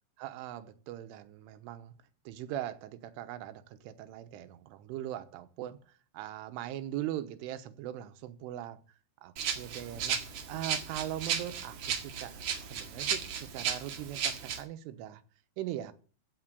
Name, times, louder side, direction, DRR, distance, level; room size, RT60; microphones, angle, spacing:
voice 1, 0.2-1.9 2.3-5.8 6.1-8.8 9.2-10.2 10.5-15.2 15.6-15.9, right 12 dB, 90° right, 3.5 m, -40 dB
Rattle (instrument), 9.4-14.6, right 7 dB, 55° right, 2.4 m, -35 dB
15.0 x 7.1 x 8.0 m
omnidirectional pair, 5.7 m